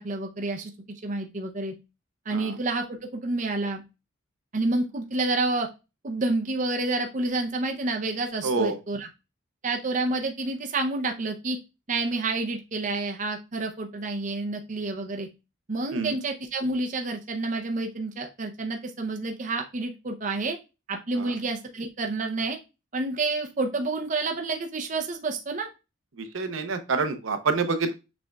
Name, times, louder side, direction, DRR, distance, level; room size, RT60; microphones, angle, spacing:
voice 1, 0.0-1.7 2.3-3.8 4.5-5.7 6.0-9.1 9.6-11.6 11.9-15.3 15.7-20.6 20.9-22.6 22.9-25.7, right 2 dB, 35° right, 3 dB, 0.6 m, -29 dB
voice 2, 8.4-8.8 15.9-16.1 21.2-21.3 26.2-27.9, right 4 dB, 75° right, 8 dB, 0.7 m, -27 dB
6.2 x 3.4 x 2.3 m, 0.27 s
head